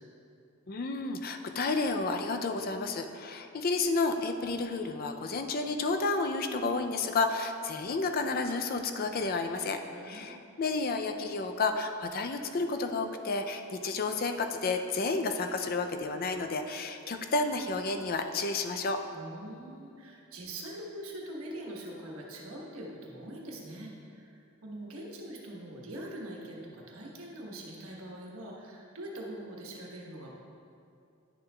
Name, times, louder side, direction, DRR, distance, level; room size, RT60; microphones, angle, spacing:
voice 1, 0.7-9.8 10.0-19.0, left 3 dB, 45° left, 6 dB, 0.4 m, -31 dB
voice 2, 9.9-10.4 19.1-30.3, right 1 dB, 90° right, -2 dB, 1.2 m, -43 dB
10.5 x 6.8 x 2.3 m, 2.6 s
head